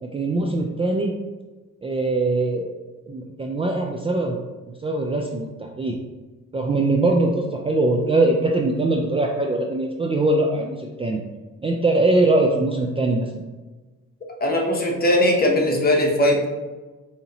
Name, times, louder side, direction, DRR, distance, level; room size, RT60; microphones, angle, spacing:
voice 1, 0.0-1.1 1.8-2.7 3.1-4.4 4.7-6.0 6.5-11.2 11.6-13.4, right 2 dB, 20° right, 1 dB, 0.3 m, -22 dB
voice 2, 14.4-16.5, left 1 dB, 30° left, 0 dB, 0.9 m, -19 dB
4.8 x 2.8 x 2.9 m, 1.2 s
cardioid pair, 90°, 30 cm